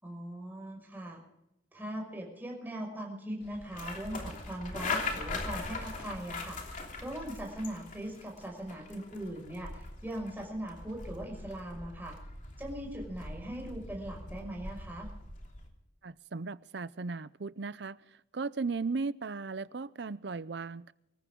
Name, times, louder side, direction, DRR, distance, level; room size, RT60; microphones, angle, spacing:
voice 1, 0.0-1.2 1.7-12.2 12.6-15.1, right 1 dB, 10° right, 5.8 m, -40 dB
sound 1, 3.4-15.7, left 3 dB, 45° left, 3.1 m, -41 dB
voice 2, 16.0-18.0 18.3-20.9, right 4 dB, 65° right, 0.6 m, -36 dB
25.0 x 14.5 x 3.8 m
head